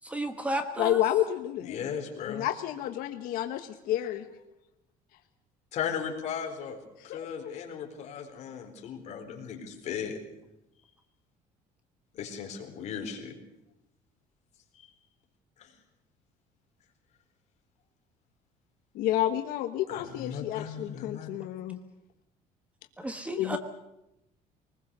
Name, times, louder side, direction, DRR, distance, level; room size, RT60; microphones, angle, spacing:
voice 1, 0.0-1.0 23.0-23.6, right 1 dB, 10° right, 7 dB, 1.2 m, -33 dB
voice 2, 0.8-1.8 2.3-4.2 7.1-7.5 18.9-21.8 23.4-23.6, left 12 dB, 75° left, 6 dB, 1.4 m, -30 dB
voice 3, 1.6-2.5 5.7-6.8 7.0-10.2 12.1-13.3 14.8-14.9 15.6-15.7 19.9-21.3, left 7 dB, 50° left, 2 dB, 4.1 m, -36 dB
23.0 x 20.0 x 6.9 m, 0.89 s
cardioid pair, 170°, 15 cm